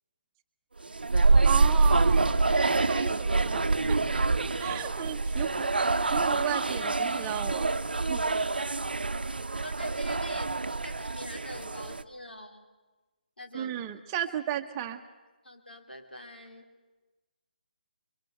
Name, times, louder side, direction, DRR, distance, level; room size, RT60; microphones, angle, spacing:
sound 1, 0.8-12.0, right 3 dB, 75° right, 0.7 m, -26 dB
voice 1, 1.4-7.8 8.1-8.2 13.5-15.0, right 10 dB, 20° right, 6 dB, 0.9 m, -35 dB
voice 2, 2.5-3.0 4.5-5.0 9.6-10.5 10.8-12.7 13.4-13.8 15.4-16.7, left 1 dB, 85° left, 4 dB, 3.0 m, -45 dB
27.0 x 23.0 x 5.6 m, 1.2 s
figure-of-eight pair, 145°, 5 cm